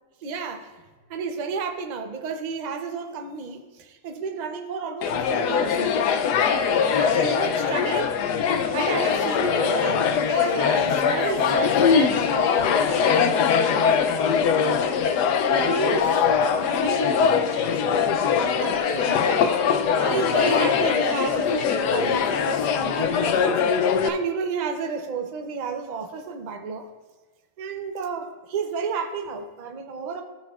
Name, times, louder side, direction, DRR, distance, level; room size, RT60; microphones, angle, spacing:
voice 1, 0.2-0.7 1.1-6.1 7.0-8.2 8.7-14.6 15.4-19.5 19.9-26.9 27.6-30.2, right 5 dB, 85° right, 5 dB, 0.3 m, -32 dB
sound 1, 5.0-24.1, left 6 dB, 80° left, 1.1 m, -22 dB
14.0 x 6.1 x 2.4 m, 1.3 s
omnidirectional pair, 1.8 m